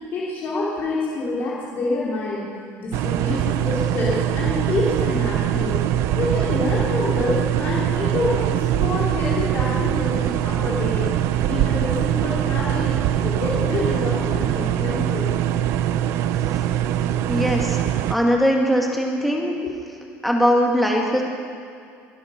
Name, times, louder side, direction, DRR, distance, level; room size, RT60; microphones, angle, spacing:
voice 1, 0.1-2.5 2.8-5.8 6.2-11.1 11.5-13.0 13.2-15.3 19.6-19.7, left 3 dB, 40° left, -7 dB, 3.8 m, -27 dB
sound 1, 2.9-18.1, right 11 dB, 60° right, 0.6 m, -22 dB
voice 2, 17.3-17.8 18.1-19.5 20.2-21.2, equal, ahead, -1 dB, 2.1 m, -20 dB
23.0 x 9.9 x 5.9 m, 2.3 s
cardioid pair, 150°, 5 cm